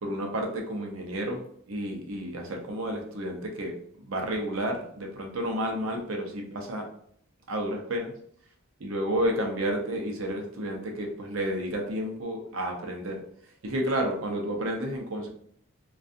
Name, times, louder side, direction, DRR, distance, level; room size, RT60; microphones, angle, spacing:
voice 1, 0.0-1.4 1.7-3.7 4.0-6.8 7.5-8.1 8.8-13.2 13.6-15.3, right 1 dB, 70° right, 2 dB, 0.6 m, -31 dB
2.6 x 2.3 x 2.4 m, 0.63 s
head